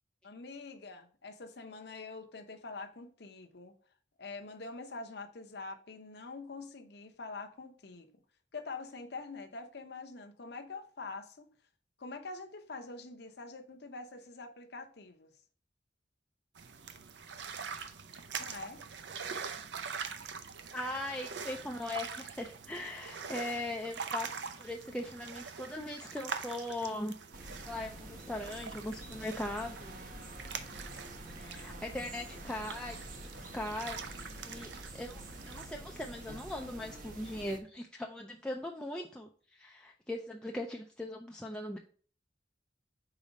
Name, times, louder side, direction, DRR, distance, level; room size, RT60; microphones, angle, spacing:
voice 1, 0.2-3.7 4.2-8.2 8.5-11.5 12.0-15.4 18.4-18.8, left 3 dB, 60° left, 0.8 m, -45 dB
sound 1, 16.6-35.7, right 6 dB, 70° right, 0.6 m, -44 dB
voice 2, 20.7-24.3 24.6-27.1 27.5-30.0 31.4-34.0 34.4-34.7 34.9-41.8, left 1 dB, 5° left, 0.4 m, -40 dB
sound 2, 27.3-37.6, right 1 dB, 45° right, 1.0 m, -47 dB
5.0 x 4.2 x 5.1 m
head